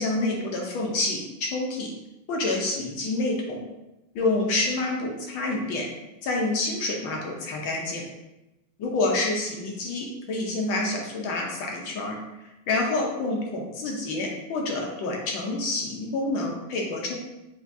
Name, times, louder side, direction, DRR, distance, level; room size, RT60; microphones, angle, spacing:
voice 1, 0.0-1.9 2.3-3.6 4.1-5.9 6.2-8.0 8.8-12.2 12.7-17.1, left 2 dB, 70° left, -1 dB, 1.3 m, -28 dB
5.8 x 2.3 x 2.6 m, 0.96 s
omnidirectional pair, 2.3 m